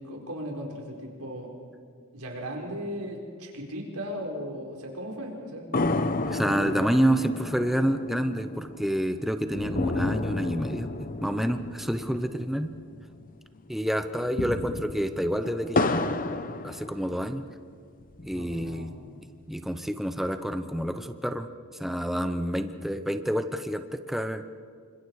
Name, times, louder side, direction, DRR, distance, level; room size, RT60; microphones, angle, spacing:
voice 1, 0.0-1.5 2.1-5.7 18.3-19.2, equal, 80° right, 0 dB, 4.8 m, -37 dB
sound 1, 5.7-13.3 13.6-13.7 14.1-17.5 18.0-19.0, left 2 dB, 40° left, 0.9 m, -32 dB
voice 2, 6.2-12.7 13.7-16.0 16.6-17.5 18.2-18.9 19.5-21.5 21.8-24.4, equal, ahead, 8 dB, 0.8 m, -28 dB
28.5 x 25.5 x 4.9 m, 2.1 s
head